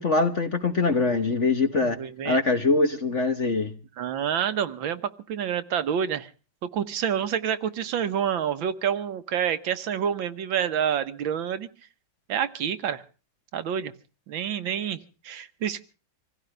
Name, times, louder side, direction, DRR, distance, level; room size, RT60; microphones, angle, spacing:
voice 1, 0.0-2.0 2.2-3.7, left 3 dB, 40° left, 1.3 m, -23 dB
voice 2, 1.7-2.4 4.0-6.3 6.7-11.7 12.3-13.0 13.5-13.9 14.3-15.0 15.2-15.8, right 8 dB, 70° right, 1.7 m, -28 dB
25.5 x 16.0 x 3.3 m
omnidirectional pair, 2.3 m